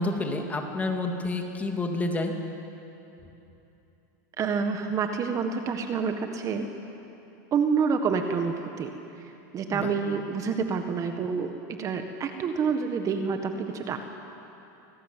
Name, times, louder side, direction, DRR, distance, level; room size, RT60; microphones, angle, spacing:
voice 1, 0.0-2.3 9.7-9.9, left 2 dB, 15° left, 3 dB, 2.8 m, -29 dB
voice 2, 4.4-6.7 7.5-8.9 9.5-14.0, right 5 dB, 30° right, 6 dB, 1.7 m, -28 dB
26.0 x 19.0 x 9.2 m, 2.9 s
supercardioid pair, 130°, 10 cm